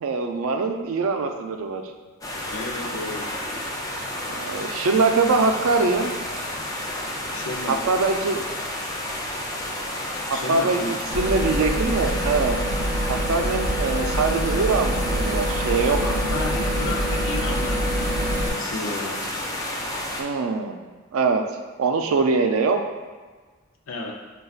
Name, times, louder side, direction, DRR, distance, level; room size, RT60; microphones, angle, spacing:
voice 1, 0.0-1.8 4.3-6.1 7.7-8.4 10.3-12.6 13.1-16.2 20.2-20.8 21.1-21.4 21.8-22.8, right 4 dB, 70° right, 5 dB, 0.4 m, -23 dB
sound 1, 2.2-20.2, left 1 dB, 15° left, 0.4 m, -31 dB
voice 2, 2.5-3.4 7.3-7.8 10.3-11.0 16.0-17.9 18.5-19.2 23.9-24.1, left 2 dB, 65° left, 0 dB, 0.6 m, -32 dB
sound 2, 11.1-18.5, right 1 dB, 10° right, 0.7 m, -25 dB
6.4 x 2.3 x 2.3 m, 1.4 s
head